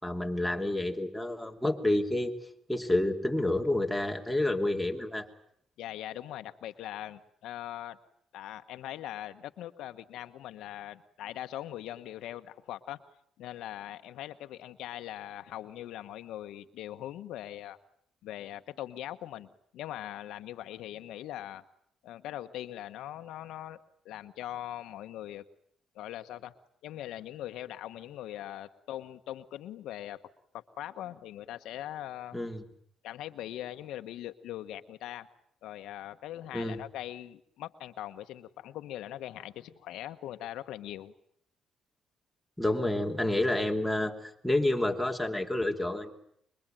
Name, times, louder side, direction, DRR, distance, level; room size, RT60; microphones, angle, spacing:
voice 1, 0.0-2.3 2.7-5.3 32.3-32.6 36.5-36.8 42.6-46.1, left 1 dB, ahead, 2 dB, 3.1 m, -29 dB
voice 2, 5.8-8.0 8.3-13.0 13.4-17.8 18.2-21.6 22.0-23.8 24.0-25.4 25.9-26.5 26.8-30.2 30.5-32.4 33.0-35.3 35.6-41.1, left 13 dB, 85° left, 10 dB, 1.2 m, -41 dB
25.5 x 22.5 x 9.1 m, 0.69 s
cardioid pair, 90°, 0 cm